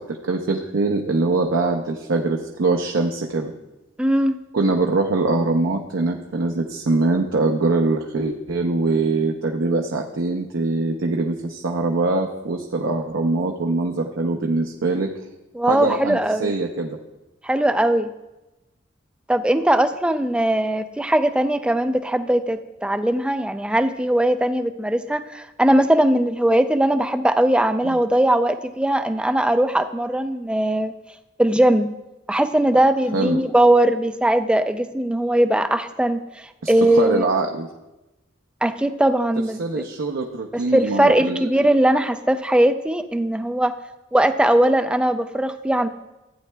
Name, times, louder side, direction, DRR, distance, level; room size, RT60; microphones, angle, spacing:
voice 1, 0.0-3.5 4.5-15.1 15.7-17.0 27.8-28.0 33.1-33.4 36.6-37.7 39.6-41.5, right 3 dB, 70° right, 2 dB, 0.6 m, -23 dB
voice 2, 4.0-4.4 15.5-16.5 17.4-18.1 19.3-30.9 31.4-31.9 32.3-37.2 38.6-39.9 40.5-43.7 44.1-45.9, right 1 dB, 5° right, 9 dB, 0.3 m, -20 dB
15.0 x 9.2 x 2.2 m, 1.0 s
head